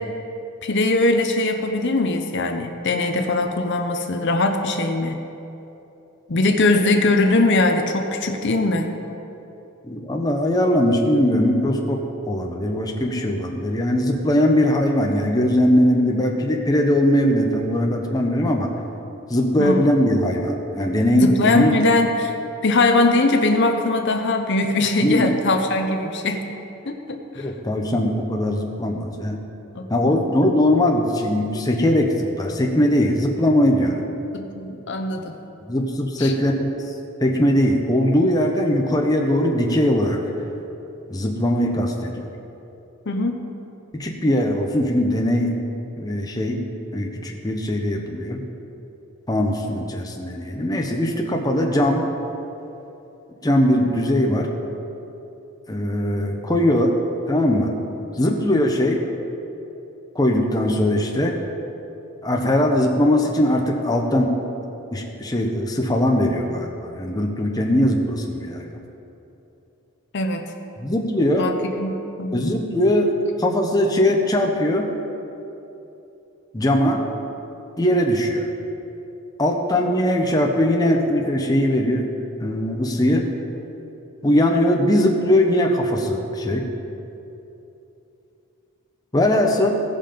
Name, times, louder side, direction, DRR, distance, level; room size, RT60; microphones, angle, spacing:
voice 1, 0.6-5.2 6.3-8.9 19.6-19.8 21.2-22.3 22.6-26.5 26.9-27.5 29.7-30.3 34.3-35.4 36.2-36.3 43.1-43.4 70.1-70.5 71.4-72.4, left 2 dB, 55° left, 4 dB, 0.7 m, -21 dB
voice 2, 9.8-18.7 19.3-21.8 25.0-25.3 27.4-29.4 29.9-34.0 35.7-36.7 37.2-40.2 41.1-42.2 43.9-45.5 46.0-46.6 46.9-48.4 49.3-52.1 53.4-54.5 55.7-56.9 57.3-57.7 58.2-59.0 60.1-61.4 62.2-64.4 64.9-68.7 70.8-71.5 72.3-73.1 73.4-74.9 76.5-77.0 77.8-78.4 79.4-82.1 82.4-83.3 84.2-86.7 89.1-89.7, left 1 dB, 15° left, 1 dB, 0.8 m, -20 dB
17.0 x 5.6 x 5.2 m, 3.0 s
head